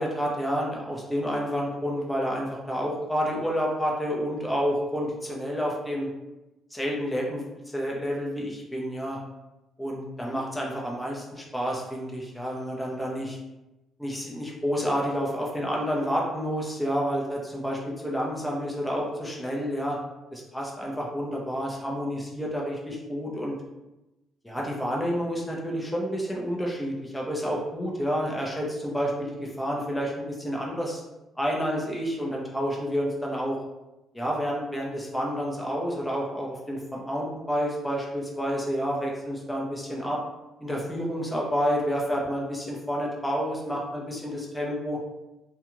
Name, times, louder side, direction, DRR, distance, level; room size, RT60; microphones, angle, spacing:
voice 1, 0.0-6.1 6.7-7.5 7.7-9.2 9.8-13.4 14.0-17.4 17.6-17.8 18.0-20.0 20.3-23.5 24.4-31.0 31.4-33.6 34.1-40.2 40.6-45.0, equal, 5° left, -3 dB, 0.7 m, -29 dB
2.4 x 2.3 x 3.0 m, 1.0 s
supercardioid pair, 75°, 0 cm